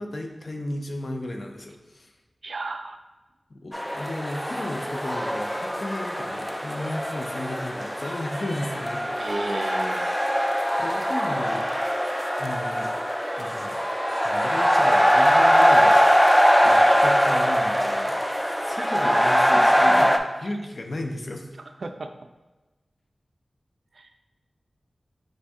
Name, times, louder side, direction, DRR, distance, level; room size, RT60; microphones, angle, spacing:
voice 1, 0.0-2.1 3.5-9.1 10.3-11.7 12.3-12.9 13.4-13.8 14.2-16.0 16.6-20.1 20.4-21.5, left 1 dB, 60° left, 3 dB, 0.5 m, -34 dB
voice 2, 2.4-3.0 9.2-10.1 16.6-17.2 18.8-18.9 19.5-20.1 21.8-22.1 23.9-24.1, right 2 dB, 75° right, 7 dB, 0.3 m, -34 dB
sound 1, 3.7-20.2, equal, 5° left, 0.3 m, -22 dB
5.2 x 2.5 x 3.5 m, 1.1 s
wide cardioid pair, 55°, 0 cm